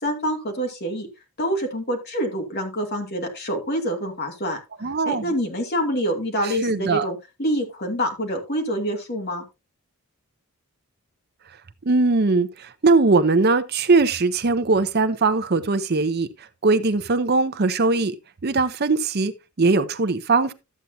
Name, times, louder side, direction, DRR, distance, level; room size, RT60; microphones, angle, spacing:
voice 1, 0.0-1.1 1.4-9.4, equal, 45° left, 2.6 m, -26 dB
voice 2, 4.8-5.3 6.6-7.1 11.8-16.3 16.6-18.2 18.4-19.3 19.6-20.5, right 3 dB, 45° right, 0.7 m, -20 dB
13.0 x 8.2 x 2.7 m
head